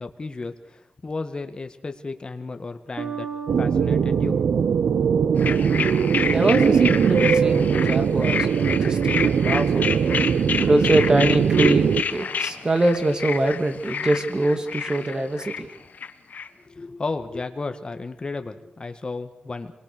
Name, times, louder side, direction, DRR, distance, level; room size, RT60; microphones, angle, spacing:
voice 1, 0.0-3.3 3.6-4.4 16.7-19.7, left 3 dB, 30° left, 7 dB, 1.8 m, -33 dB
Bass guitar, 3.0-6.5, right 7 dB, 45° right, 2.4 m, -37 dB
sound 1, 3.5-12.0, right 7 dB, 80° right, 0.8 m, -20 dB
sound 2, 5.4-16.5, left 6 dB, 65° left, 1.2 m, -29 dB
voice 2, 6.3-10.0 10.6-15.7, right 1 dB, 25° right, 7 dB, 2.2 m, -23 dB
27.0 x 22.0 x 6.8 m, 0.82 s
wide cardioid pair, 135°, 3 cm